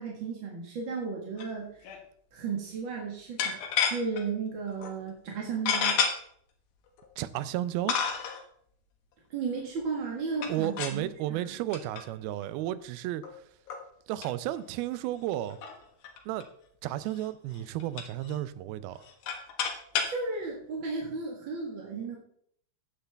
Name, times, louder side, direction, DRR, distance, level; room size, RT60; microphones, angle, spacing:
voice 1, 0.0-1.7 2.3-6.0 9.3-11.4 20.0-22.2, right 5 dB, 45° right, 1.6 m, -34 dB
sound 1, 1.4-1.6 1.8-2.0 3.4-4.2 4.8-4.9 5.7-6.1 7.0-7.1 7.9-8.4 10.3-11.0 11.7-12.0 12.4-12.5 13.2-13.3 13.7-13.8 14.2-14.3 14.6-14.7 15.0-15.1 15.5-16.4 17.1-17.3 17.5-18.4 18.9-20.2, left 7 dB, 75° left, 3.2 m, -30 dB
voice 2, 7.2-8.0 10.5-13.2 14.1-15.6 16.3-16.5 16.8-19.0, right 13 dB, 90° right, 2.5 m, -33 dB
15.0 x 10.0 x 3.4 m
omnidirectional pair, 4.3 m